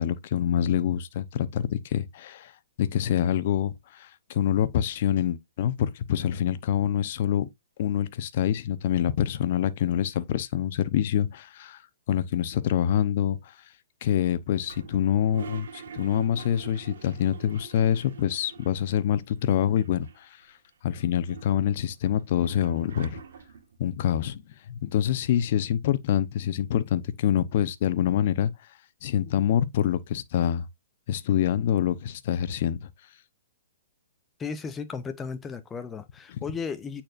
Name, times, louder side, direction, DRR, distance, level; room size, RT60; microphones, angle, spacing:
voice 1, 0.0-2.5 2.8-7.5 7.8-11.8 12.1-13.5 14.0-20.3 20.8-23.2 23.8-24.4 24.7-28.5 29.0-30.7 31.1-32.9 36.3-36.4, left 10 dB, 50° left, 0.8 m, -26 dB
Toilet flush, 14.6-19.0 19.3-19.4 19.6-20.4 20.9-23.8, right 7 dB, 70° right, 1.5 m, -45 dB
voice 2, 34.4-37.0, left 5 dB, 15° left, 0.6 m, -35 dB
8.7 x 4.4 x 2.5 m
hypercardioid pair, 140°, 0 cm